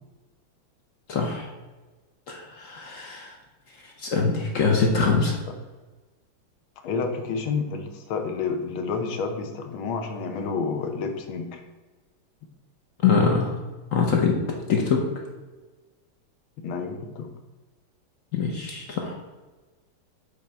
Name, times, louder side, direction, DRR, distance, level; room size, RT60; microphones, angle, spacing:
voice 1, 1.1-1.5 2.3-3.3 4.0-5.4 13.0-13.6 13.9-14.4 14.7-15.0 18.3-19.2, left 5 dB, 60° left, 1 dB, 0.8 m, -23 dB
voice 2, 6.8-11.6 16.6-17.3, left 5 dB, 80° left, 5 dB, 1.6 m, -29 dB
8.0 x 3.5 x 4.3 m, 1.3 s
omnidirectional pair, 2.3 m